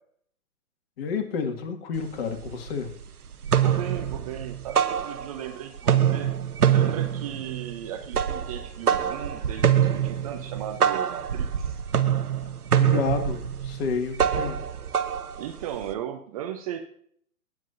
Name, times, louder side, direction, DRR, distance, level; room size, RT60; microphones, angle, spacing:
voice 1, 1.0-2.9 12.8-14.6, left 6 dB, 40° left, 5 dB, 1.9 m, -30 dB
sound 1, 2.0-2.1 2.4-3.0 3.3-5.5 5.8-15.9, right 9 dB, 85° right, 0.8 m, -25 dB
voice 2, 3.6-6.3 6.7-11.8 15.4-16.8, right 10 dB, 25° right, 6 dB, 0.6 m, -36 dB
17.5 x 7.4 x 2.6 m, 0.63 s
figure-of-eight pair, 125°, 44 cm